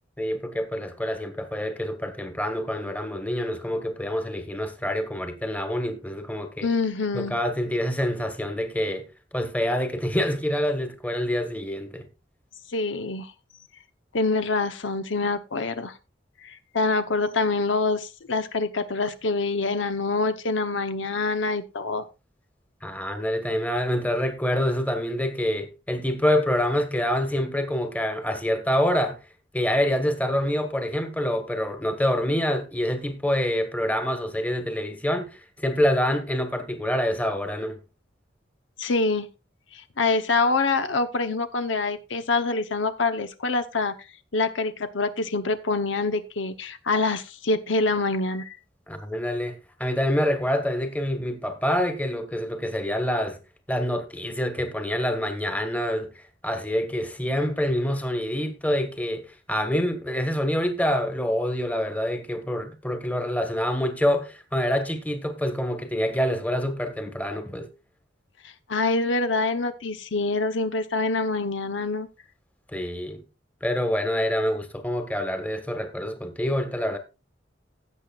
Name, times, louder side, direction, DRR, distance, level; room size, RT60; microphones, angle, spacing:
voice 1, 0.2-6.7 7.1-9.1 9.3-12.1 22.8-29.2 29.5-37.8 48.9-53.4 53.7-67.7 72.7-73.2 73.6-77.0, equal, 10° left, 1.4 m, -26 dB
voice 2, 6.6-7.4 12.7-13.3 14.1-15.9 16.4-22.0 38.8-39.3 39.7-43.9 44.3-48.6 68.7-72.1, left 3 dB, 85° left, 0.9 m, -25 dB
16.5 x 7.7 x 2.4 m
head